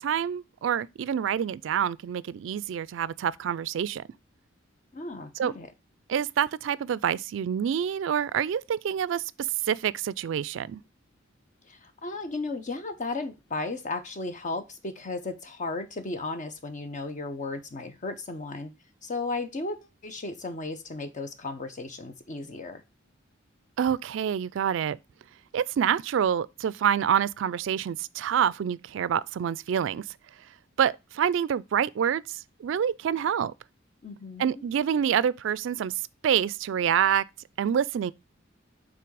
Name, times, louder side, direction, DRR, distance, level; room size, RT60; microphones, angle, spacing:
voice 1, 0.0-4.0 5.4-5.5 6.1-9.2 9.7-10.8 23.8-25.0 25.5-30.0 30.8-33.5 34.4-35.9 36.2-37.2 37.6-38.1, right 8 dB, 65° right, 0.3 m, -27 dB
voice 2, 4.9-5.7 11.7-18.7 19.0-19.8 20.0-22.8 34.0-34.6, left 3 dB, 40° left, 0.7 m, -35 dB
5.9 x 3.8 x 4.6 m
head